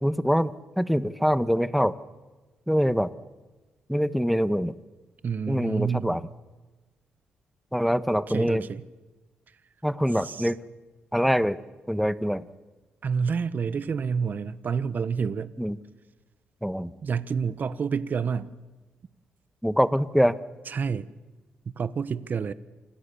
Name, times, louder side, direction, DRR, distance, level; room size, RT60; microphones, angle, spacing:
voice 1, 0.0-2.0 2.7-3.1 3.9-4.8 5.5-6.2 7.7-8.7 9.8-10.6 11.1-11.6 11.9-12.4 15.6-15.8 16.6-16.9 19.6-20.3, equal, ahead, 1.3 m, -24 dB
voice 2, 5.2-6.2 8.3-8.9 10.2-10.5 13.0-15.5 17.0-18.5 20.7-21.1 21.8-22.5, right 6 dB, 50° right, 1.2 m, -28 dB
28.5 x 27.0 x 7.1 m
cardioid pair, 85°, 4 cm